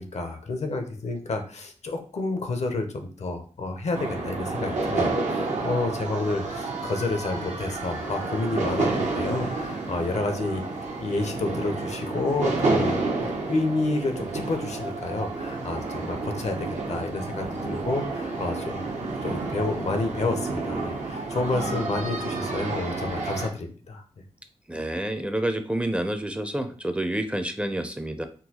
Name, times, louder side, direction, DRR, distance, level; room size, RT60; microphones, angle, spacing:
voice 1, 0.0-10.6 11.0-18.9 19.2-24.0, left 3 dB, 70° left, 5 dB, 0.6 m, -30 dB
sound 1, 3.9-23.5, right 3 dB, 85° right, 0.7 m, -30 dB
voice 2, 24.7-28.3, right 1 dB, 10° right, 7 dB, 0.4 m, -28 dB
3.8 x 2.2 x 2.8 m, 0.41 s
cardioid pair, 60°, 12 cm